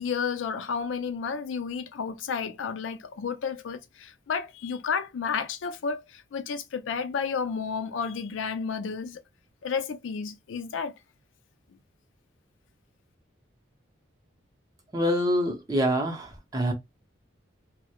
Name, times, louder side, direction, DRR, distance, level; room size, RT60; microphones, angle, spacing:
voice 1, 0.0-9.2 9.6-10.9, left 6 dB, 75° left, 0.4 m, -31 dB
voice 2, 14.9-16.7, equal, 20° right, 0.6 m, -26 dB
2.2 x 2.1 x 2.8 m
head